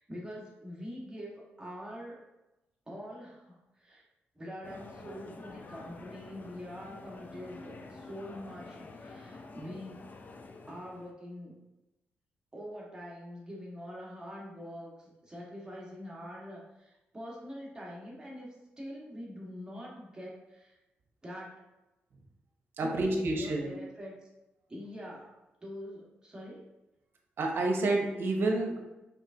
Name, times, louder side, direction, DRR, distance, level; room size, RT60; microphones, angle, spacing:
voice 1, 0.0-2.2 2.9-4.0 4.3-10.0 10.7-11.5 12.5-20.8 21.2-21.5 22.8-24.3 24.7-25.3 25.6-26.6, equal, 20° right, -4 dB, 1.4 m, -44 dB
sound 1, 4.6-11.1, left 3 dB, 45° left, 0.5 m, -48 dB
voice 2, 22.8-23.7 27.4-28.8, right 2 dB, 65° right, 2 dB, 0.8 m, -29 dB
4.8 x 3.4 x 2.7 m, 0.98 s
cardioid pair, 75°, 4 cm